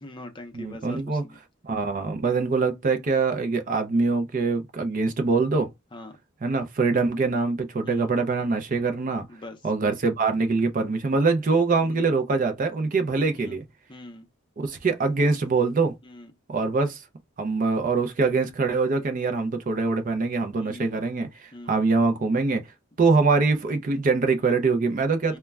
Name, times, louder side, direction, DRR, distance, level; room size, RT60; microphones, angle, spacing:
voice 1, 0.0-1.4 5.9-6.2 7.8-8.1 9.3-9.7 11.8-12.1 13.3-13.6 13.9-14.3 16.0-16.3 20.6-21.0 21.5-21.8 25.3-25.4, left 1 dB, 25° left, 0.5 m, -43 dB
voice 2, 0.5-1.2 1.6-5.7 6.4-9.3 9.6-13.6 14.6-16.0 16.5-17.0 17.4-22.7 23.0-25.4, right 4 dB, 40° right, 0.4 m, -24 dB
2.2 x 2.1 x 3.3 m
head